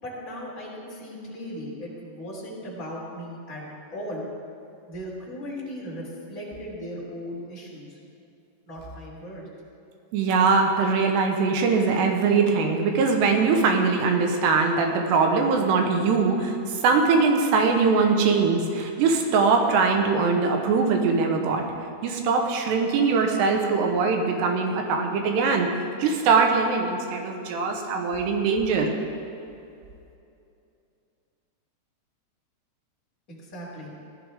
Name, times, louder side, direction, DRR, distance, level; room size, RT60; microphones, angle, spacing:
voice 1, 0.0-3.6 3.9-4.3 4.9-8.0 8.6-9.5 33.3-33.9, equal, 20° left, -7 dB, 3.1 m, -37 dB
voice 2, 10.1-21.6 22.0-25.7 26.0-28.9, right 4 dB, 90° right, 3 dB, 3.2 m, -22 dB
17.0 x 11.5 x 3.6 m, 2.7 s
omnidirectional pair, 4.9 m